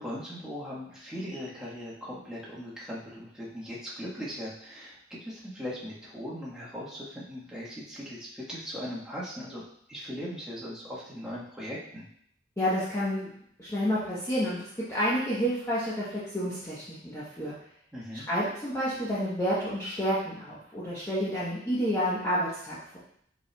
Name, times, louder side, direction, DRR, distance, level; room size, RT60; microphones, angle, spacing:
voice 1, 0.0-9.6 9.9-12.1 17.9-18.2, equal, 5° right, -8 dB, 1.2 m, -39 dB
voice 2, 12.6-13.3 13.6-17.5 18.1-23.0, equal, 15° left, -10 dB, 0.9 m, -30 dB
5.2 x 4.6 x 2.2 m, 0.67 s
head